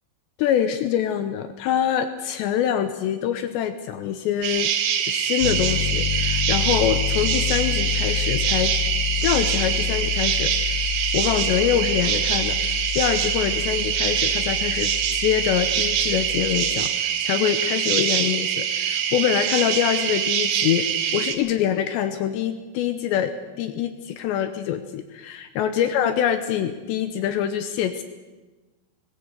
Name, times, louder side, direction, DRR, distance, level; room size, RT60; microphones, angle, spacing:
voice 1, 0.4-4.7 5.1-8.7 9.2-10.8 11.1-20.9 21.1-28.0, left 10 dB, 80° left, 9 dB, 2.8 m, -25 dB
sound 1, 4.4-21.4, right 9 dB, 75° right, 3.9 m, -24 dB
Piano, 5.4-16.7, left 13 dB, 50° left, 2.6 m, -29 dB
19.5 x 17.0 x 8.1 m, 1.2 s
omnidirectional pair, 5.7 m